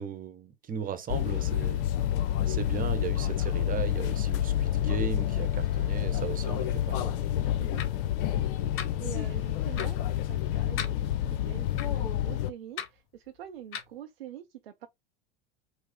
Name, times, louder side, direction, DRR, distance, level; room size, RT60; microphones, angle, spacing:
voice 1, 0.0-1.8 2.5-7.1, right 7 dB, 30° right, 0.9 m, -36 dB
sound 1, 1.1-12.5, left 11 dB, 65° left, 0.6 m, -29 dB
sound 2, 7.8-7.9 8.8-8.9 9.8-9.9 10.8-10.9 11.8-11.9 12.8-12.9 13.7-13.9, left 8 dB, 45° left, 1.0 m, -35 dB
voice 2, 9.0-14.9, right 10 dB, 85° right, 0.6 m, -45 dB
4.8 x 2.0 x 3.8 m
hypercardioid pair, 80°, 29 cm